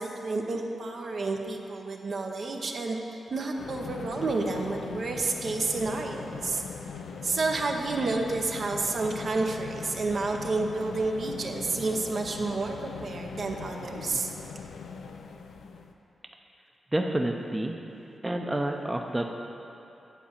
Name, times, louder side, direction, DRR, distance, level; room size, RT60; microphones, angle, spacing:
voice 1, 0.0-6.6 7.2-14.3, right 3 dB, 60° right, 2 dB, 0.8 m, -30 dB
sound 1, 3.6-15.9, left 5 dB, 85° left, 0.4 m, -40 dB
voice 2, 16.9-17.8 18.2-19.3, right 1 dB, 15° right, 2 dB, 0.6 m, -29 dB
9.2 x 4.1 x 7.2 m, 2.9 s
cardioid pair, 60°, 0 cm